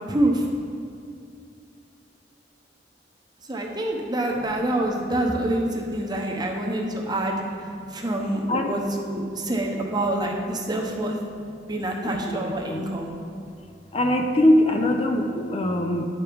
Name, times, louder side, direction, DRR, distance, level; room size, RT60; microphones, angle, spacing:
voice 1, 0.1-0.4 3.5-7.4 7.9-11.2 11.6-13.1, right 1 dB, 25° right, 0 dB, 0.9 m, -26 dB
voice 2, 12.3-12.8 13.9-16.0, left 1 dB, 35° left, 4 dB, 0.5 m, -22 dB
10.0 x 5.2 x 4.6 m, 2.5 s
head